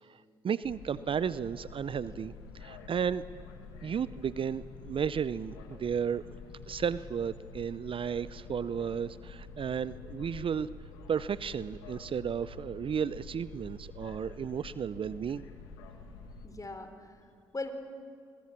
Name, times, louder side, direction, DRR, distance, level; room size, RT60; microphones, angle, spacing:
voice 1, 0.4-2.3 2.6-3.2 3.8-6.2 6.7-10.7 11.1-15.5, right 7 dB, 45° right, 17 dB, 0.6 m, -33 dB
sound 1, 0.6-16.5, left 4 dB, 85° left, 1.8 m, -48 dB
voice 2, 16.4-17.7, left 3 dB, 30° left, 7 dB, 3.6 m, -40 dB
22.5 x 21.5 x 7.4 m, 2.2 s
hypercardioid pair, 45°, 12 cm